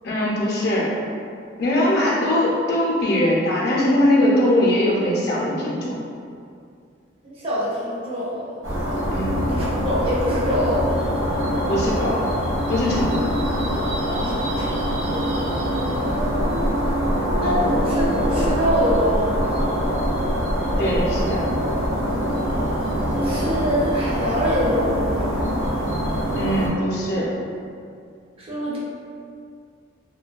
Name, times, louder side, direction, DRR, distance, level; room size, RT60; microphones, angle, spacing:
voice 1, 0.0-0.9 1.6-6.0 9.1-9.4 11.7-12.2 12.7-13.2 20.8-21.4 26.3-27.3, left 1 dB, 55° left, -5 dB, 0.5 m, -21 dB
voice 2, 7.2-8.6 9.5-10.9 14.1-15.3 15.7-16.7 17.4-19.6 23.2-25.3 28.4-28.8, equal, 30° right, -8 dB, 0.5 m, -25 dB
sound 1, 8.6-26.7, equal, 90° right, 0.6 m, -23 dB
2.6 x 2.2 x 2.2 m, 2.3 s
head